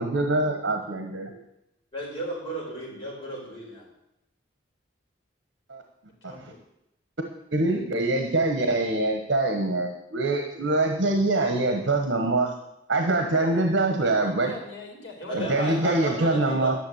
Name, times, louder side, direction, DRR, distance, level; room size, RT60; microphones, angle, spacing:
voice 1, 0.0-1.4 5.7-5.8 7.5-12.5 12.9-14.5 15.3-16.7, right 2 dB, 65° right, 4 dB, 1.3 m, -24 dB
voice 2, 1.9-3.9 15.3-16.7, equal, 25° left, -6 dB, 5.7 m, -33 dB
voice 3, 6.2-6.6 13.3-16.5, left 2 dB, 75° left, 1 dB, 3.6 m, -42 dB
12.0 x 7.0 x 8.0 m, 0.84 s
head